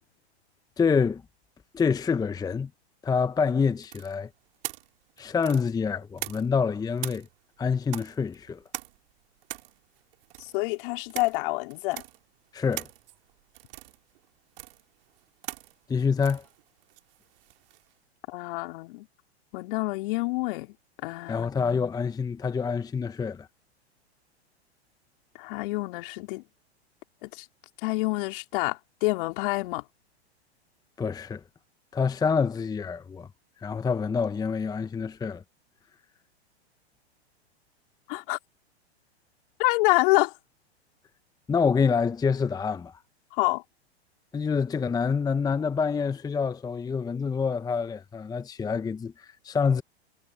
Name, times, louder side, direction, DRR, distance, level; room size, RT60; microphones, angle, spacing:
voice 1, 0.8-1.2 1.7-2.7 3.0-4.3 5.2-7.3 7.6-8.6 12.5-12.9 15.9-16.4 21.3-23.5 31.0-31.4 31.9-33.3 33.6-35.4 41.5-43.0 44.3-49.8, left 5 dB, 10° left, 0.9 m, -26 dB
sound 1, 3.8-6.7 7.0-17.9, right 19 dB, 55° right, 2.5 m, -42 dB
voice 2, 10.5-12.0 18.3-19.1 19.5-20.7 21.0-21.5 25.4-26.4 27.2-27.4 27.8-29.8 38.1-38.4 39.6-40.3 43.3-43.6, left 23 dB, 50° left, 2.9 m, -27 dB
hypercardioid pair, 110°, 33 cm